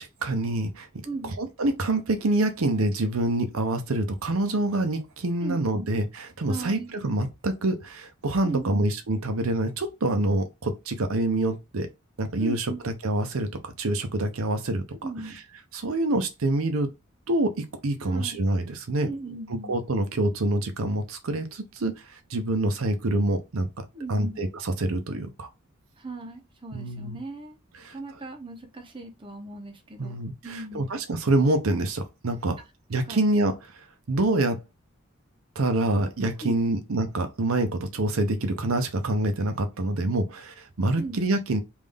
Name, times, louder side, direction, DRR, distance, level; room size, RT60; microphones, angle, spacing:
voice 1, 0.0-0.9 1.2-11.9 12.2-15.0 15.7-16.9 17.3-19.1 19.7-25.5 26.7-27.2 27.7-28.0 30.0-32.6 32.9-34.6 35.6-41.6, right 2 dB, 85° right, 0.7 m, -26 dB
voice 2, 1.0-1.4 5.4-5.9 6.5-6.9 8.4-8.9 12.4-12.8 15.0-15.4 18.0-18.4 19.0-19.8 23.9-24.4 26.0-27.6 27.9-30.2 30.4-30.9 33.1-33.2 36.4-36.8 41.0-41.2, right 2 dB, 25° right, 0.8 m, -37 dB
3.6 x 2.6 x 3.4 m
head